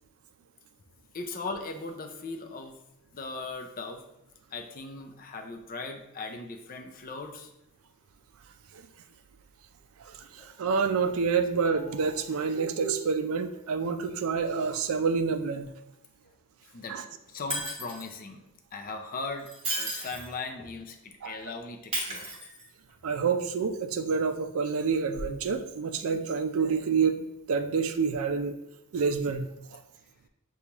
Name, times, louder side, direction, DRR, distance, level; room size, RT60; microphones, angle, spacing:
voice 1, 1.1-2.8 3.1-4.0 4.5-7.5 16.7-17.0 17.3-18.4 18.7-19.5 19.8-20.9 21.2-22.3, left 3 dB, 40° left, 5 dB, 0.5 m, -38 dB
voice 2, 10.0-15.7 16.9-17.0 21.2-21.4 23.0-28.5 28.9-29.8, right 5 dB, 65° right, 8 dB, 0.4 m, -28 dB
Shatter, 17.5-18.2 19.4-20.4 21.9-22.9 25.2-25.3, right 1 dB, 25° right, 1.1 m, -34 dB
6.6 x 2.3 x 2.9 m, 0.82 s
head